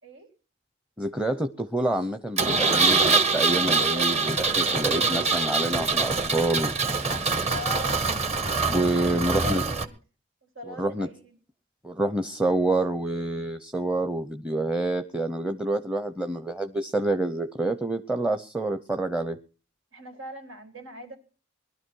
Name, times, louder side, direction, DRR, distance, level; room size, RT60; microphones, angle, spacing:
voice 1, 1.0-6.7 8.7-9.6 10.7-11.1 11.8-19.4, right 2 dB, 5° right, 8 dB, 0.8 m, -27 dB
Engine, 2.4-9.8, right 4 dB, 35° right, 1.6 m, -24 dB
voice 2, 3.4-5.1 7.5-8.0 8.9-9.9 10.4-11.4 19.9-21.2, equal, 90° right, 5 dB, 4.5 m, -41 dB
21.0 x 12.5 x 4.7 m, 0.38 s
head